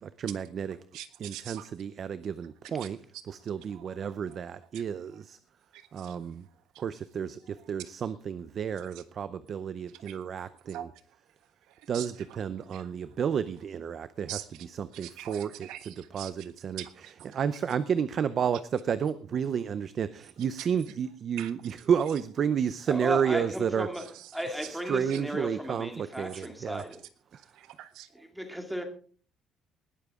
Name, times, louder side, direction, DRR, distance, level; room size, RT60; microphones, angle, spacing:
voice 1, 0.0-0.8 1.2-3.0 3.3-5.4 5.9-6.5 6.8-10.9 11.9-14.4 14.8-16.8 17.3-23.9 24.5-26.8 27.3-27.4, right 7 dB, 35° right, 0.6 m, -31 dB
voice 2, 0.9-1.7 2.8-2.9 3.1-4.4 4.7-4.8 5.7-6.3 6.7-6.8 7.5-7.6 8.8-9.0 9.9-11.2 11.6-12.9 14.3-14.7 14.9-16.5 16.8-17.4 20.4-20.7 21.4-21.7 23.9-24.4 25.0-25.2 26.3-26.5 27.4-28.2, right 13 dB, 85° right, 1.4 m, -45 dB
voice 3, 22.9-24.1 24.3-27.0 28.1-28.8, equal, ahead, 2.2 m, -35 dB
19.5 x 12.0 x 3.6 m
cardioid pair, 180°, 0 cm